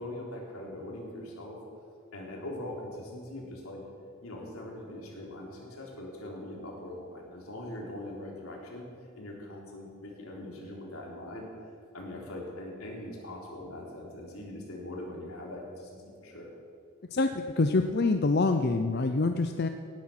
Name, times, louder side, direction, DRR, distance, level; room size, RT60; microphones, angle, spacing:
voice 1, 0.0-1.6 2.1-3.8 4.2-8.9 9.1-11.5 11.9-16.5, left 1 dB, 85° left, -2 dB, 3.7 m, -41 dB
voice 2, 17.1-19.7, left 3 dB, 50° left, 7 dB, 0.6 m, -26 dB
18.0 x 10.5 x 5.9 m, 2.4 s
head